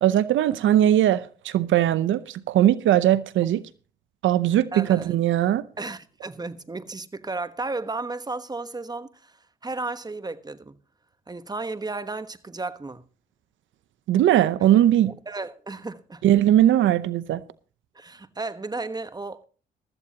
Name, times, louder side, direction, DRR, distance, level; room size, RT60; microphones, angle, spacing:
voice 1, 0.0-3.6 4.2-5.6 14.1-15.1 16.2-17.4, right 12 dB, 75° right, 0.7 m, -20 dB
voice 2, 4.7-5.2 5.8-10.8 11.3-13.0 14.6-14.7 15.1-16.2 17.9-19.4, right 3 dB, 20° right, 1.2 m, -34 dB
16.0 x 13.5 x 2.9 m
supercardioid pair, 70°, 20 cm